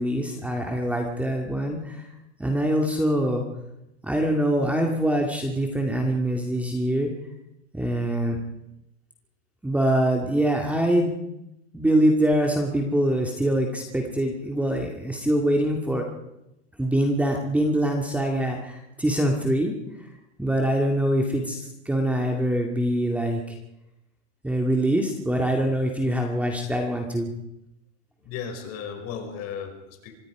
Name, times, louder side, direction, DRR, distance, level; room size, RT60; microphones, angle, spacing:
voice 1, 0.0-2.1 2.4-3.4 4.0-7.1 7.7-8.4 9.6-11.2 11.7-16.0 16.8-19.8 20.4-23.6 24.4-27.3, right 1 dB, 5° right, 2 dB, 2.2 m, -24 dB
voice 2, 28.2-30.1, left 7 dB, 40° left, 4 dB, 5.7 m, -35 dB
25.0 x 22.0 x 4.9 m, 0.87 s
supercardioid pair, 140°, 36 cm